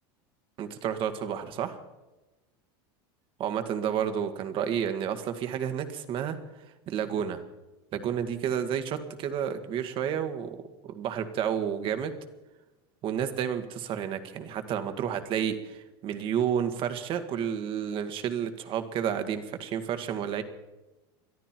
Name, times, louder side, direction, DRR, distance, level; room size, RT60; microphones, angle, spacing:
voice 1, 0.6-1.8 3.4-6.4 6.9-7.4 7.9-10.6 10.8-12.1 13.0-20.4, right 8 dB, 45° right, 8 dB, 1.9 m, -30 dB
22.5 x 13.5 x 4.5 m, 1.1 s
supercardioid pair, 120°, 12 cm